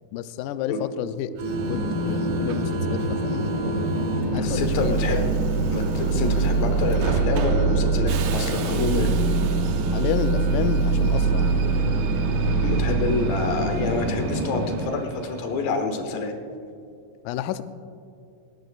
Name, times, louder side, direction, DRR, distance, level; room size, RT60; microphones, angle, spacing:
voice 1, 0.1-3.8 4.3-5.3 9.9-11.5 17.2-17.6, left 10 dB, 90° left, 11 dB, 1.8 m, -30 dB
Subway metro underground, 1.4-15.7, right 4 dB, 75° right, 2.6 m, -35 dB
sound 1, 1.5-14.8, equal, 40° right, 1.7 m, -27 dB
sound 2, 4.2-13.8, right 6 dB, 25° left, 2.2 m, -25 dB
voice 2, 4.3-5.2 5.7-9.1 12.6-16.3, left 3 dB, 75° left, 5 dB, 2.9 m, -28 dB
20.0 x 18.5 x 2.4 m, 2.4 s
omnidirectional pair, 4.2 m